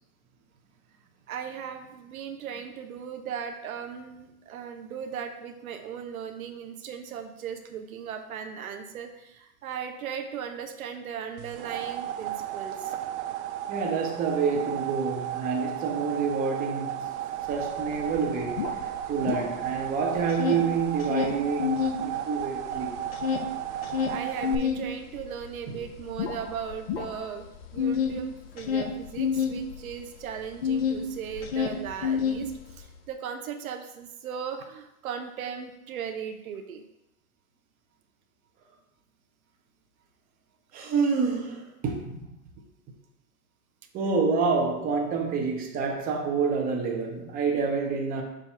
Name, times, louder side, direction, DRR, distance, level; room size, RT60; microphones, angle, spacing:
voice 1, 1.3-12.9 24.1-27.5 27.7-36.8, right 7 dB, 65° right, 7 dB, 0.9 m, -37 dB
sound 1, 11.4-24.6, right 11 dB, 50° right, 0.5 m, -34 dB
voice 2, 13.7-17.1 17.5-18.8 19.1-22.9 25.7-25.8 40.7-42.2 43.9-48.2, right 5 dB, 20° right, 1 dB, 0.8 m, -28 dB
sound 2, 17.5-17.6 17.9-19.9 20.2-22.0 22.4-31.0 31.3-32.9, left 7 dB, 40° left, 0.7 m, -29 dB
7.1 x 2.8 x 5.6 m, 0.87 s
hypercardioid pair, 125°, 46 cm